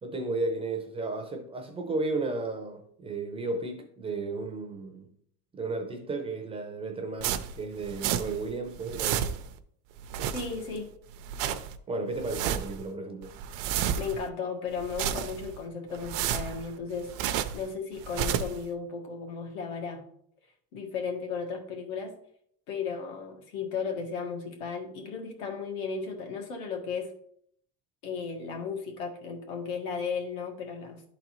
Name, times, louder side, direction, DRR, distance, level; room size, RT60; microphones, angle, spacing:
voice 1, 0.0-5.1 5.5-9.4 11.9-13.3, right 3 dB, 15° right, 0.5 m, -34 dB
sound 1, 7.2-8.5 8.7-9.6 10.0-10.8 11.1-11.8 12.2-12.8 13.2-14.3 14.7-15.6 15.9-17.7 18.0-18.6, right 9 dB, 65° right, 0.6 m, -31 dB
voice 2, 10.3-10.9 13.9-17.1 17.5-20.0 20.7-22.1 22.7-27.1 28.0-31.0, left 5 dB, 80° left, 1.7 m, -35 dB
11.5 x 3.9 x 3.0 m
cardioid pair, 165°, 36 cm